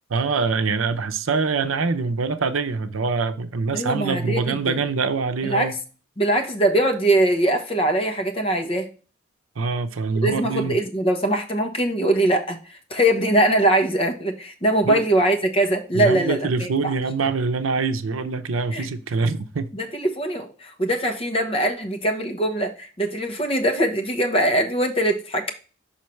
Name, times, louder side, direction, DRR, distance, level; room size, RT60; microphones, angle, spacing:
voice 1, 0.1-5.8 9.6-10.8 14.8-15.0 15.9-19.7, right 4 dB, 85° right, 0.6 m, -24 dB
voice 2, 3.7-4.8 5.4-5.7 6.2-8.9 10.2-16.7 18.7-18.9 19.7-25.5, right 1 dB, 30° left, 1.0 m, -22 dB
5.8 x 5.5 x 3.2 m
head